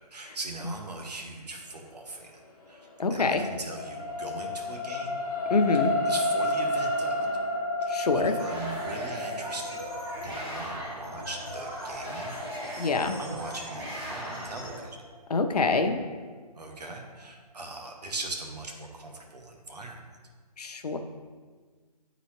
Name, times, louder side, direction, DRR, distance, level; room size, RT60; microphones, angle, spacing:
voice 1, 0.1-2.4 2.7-5.2 5.7-5.8 6.0-7.2 7.8-9.8 10.2-12.4 12.8-15.0 16.5-20.0, right 2 dB, 80° right, 2 dB, 1.2 m, -40 dB
sound 1, 2.6-15.1 15.7-15.8, left 1 dB, 15° right, 1.6 m, -32 dB
voice 2, 3.0-3.4 5.5-5.9 7.9-8.3 12.8-13.2 15.3-16.0 20.6-21.0, left 3 dB, 70° left, 6 dB, 0.7 m, -25 dB
sound 2, 8.4-14.8, equal, 35° right, 1.4 m, -38 dB
9.3 x 4.0 x 3.1 m, 1.5 s
hypercardioid pair, 170°, 21 cm